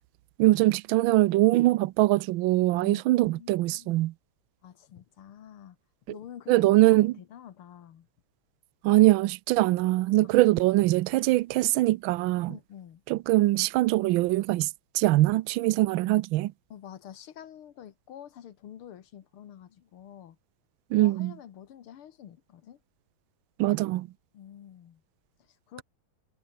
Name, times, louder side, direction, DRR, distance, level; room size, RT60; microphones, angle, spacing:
voice 1, 0.4-4.1 6.5-7.1 8.8-12.5 13.1-14.7 14.9-16.5 20.9-21.3 23.6-24.1, right 17 dB, 75° right, 1.3 m, -22 dB
voice 2, 2.8-3.9 4.6-5.8 6.1-6.8 7.1-8.1 10.2-10.6 12.5-13.0 16.7-20.4 21.0-22.8 24.3-25.0 25.4-25.8, left 10 dB, 90° left, 2.3 m, -48 dB
omnidirectional pair, 2.3 m